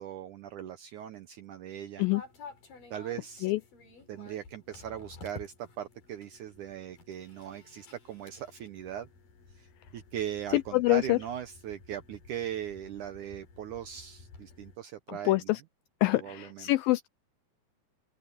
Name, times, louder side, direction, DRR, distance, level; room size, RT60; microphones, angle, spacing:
voice 1, 0.0-2.0 2.9-3.5 4.1-9.1 9.6-9.7 9.9-15.6 16.1-16.7, right 10 dB, 75° right, 1.9 m, -39 dB
sound 1, 2.1-14.8, left 3 dB, 55° left, 7.2 m, -52 dB
voice 2, 10.7-11.2 15.3-15.6 16.0-17.1, left 20 dB, 85° left, 2.1 m, -25 dB
open air
omnidirectional pair, 4.6 m